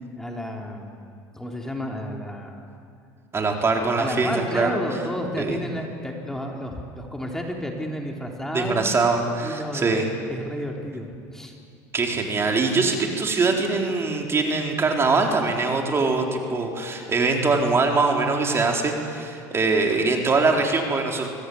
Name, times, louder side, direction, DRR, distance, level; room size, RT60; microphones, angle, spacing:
voice 1, 0.2-1.0 1.3-2.7 4.0-8.9 9.4-9.9 10.3-11.5, equal, 5° left, 0 dB, 3.6 m, -31 dB
voice 2, 3.3-4.8 5.4-5.6 8.5-10.1 11.9-21.3, right 3 dB, 30° right, 2 dB, 4.3 m, -23 dB
25.5 x 19.5 x 9.7 m, 2.4 s
supercardioid pair, 90°, 9 cm